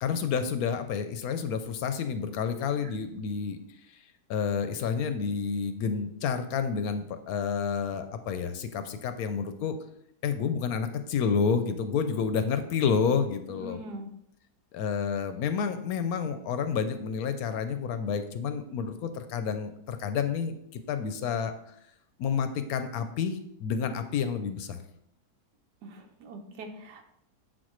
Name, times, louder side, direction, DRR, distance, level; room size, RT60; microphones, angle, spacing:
voice 1, 0.0-3.6 4.3-9.8 10.2-13.8 14.7-21.5 22.2-24.8, left 6 dB, 70° left, 9 dB, 1.0 m, -29 dB
voice 2, 13.5-14.1 25.8-27.0, right 1 dB, 85° right, 4 dB, 1.4 m, -42 dB
7.5 x 4.3 x 3.1 m, 0.75 s
omnidirectional pair, 1.7 m